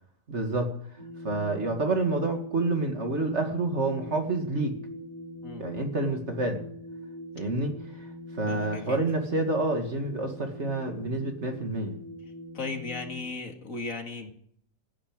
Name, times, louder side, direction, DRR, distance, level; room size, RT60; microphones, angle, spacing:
voice 1, 0.3-0.7 1.2-4.8 5.6-6.6 7.3-8.1 8.4-12.0, right 2 dB, 45° right, 4 dB, 2.3 m, -28 dB
sound 1, 1.0-13.2, left 1 dB, 25° right, 2.9 m, -42 dB
voice 2, 8.5-9.0 12.5-14.3, left 3 dB, 55° left, 4 dB, 2.4 m, -36 dB
15.5 x 9.8 x 8.9 m, 0.63 s
omnidirectional pair, 1.8 m